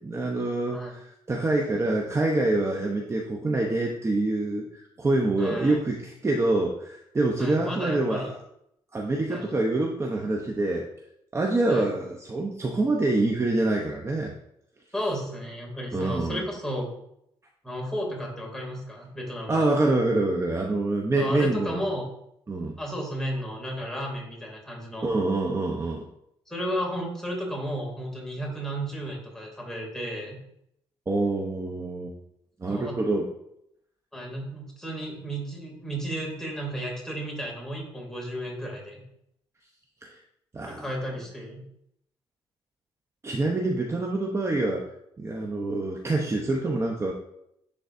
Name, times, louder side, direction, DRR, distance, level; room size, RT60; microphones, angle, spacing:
voice 1, 0.0-8.3 8.9-10.9 11.3-14.3 15.9-16.4 19.5-21.8 22.5-22.8 25.0-26.0 31.1-32.1 32.6-33.3 40.0-40.1 40.5-40.9 43.2-44.9 45.2-47.1, right 2 dB, 25° right, 0 dB, 0.8 m, -26 dB
voice 2, 5.4-5.8 7.4-8.3 9.3-9.5 11.7-11.9 14.9-16.9 17.6-19.7 21.2-22.1 22.8-25.1 26.5-30.4 32.7-33.0 34.1-39.0 40.7-41.6, equal, 5° left, -2 dB, 2.6 m, -33 dB
10.0 x 3.8 x 2.6 m, 0.76 s
cardioid pair, 85°, 10 cm